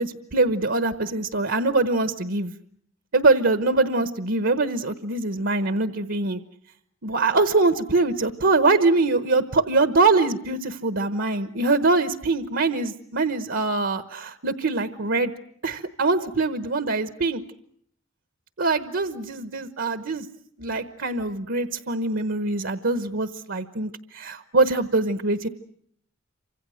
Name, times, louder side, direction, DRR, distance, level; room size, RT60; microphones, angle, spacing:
voice 1, 0.0-2.5 3.1-6.4 7.0-15.3 15.6-17.4 18.6-20.2 20.6-25.5, right 3 dB, 65° right, 10 dB, 1.1 m, -23 dB
28.0 x 26.0 x 6.4 m, 0.66 s
head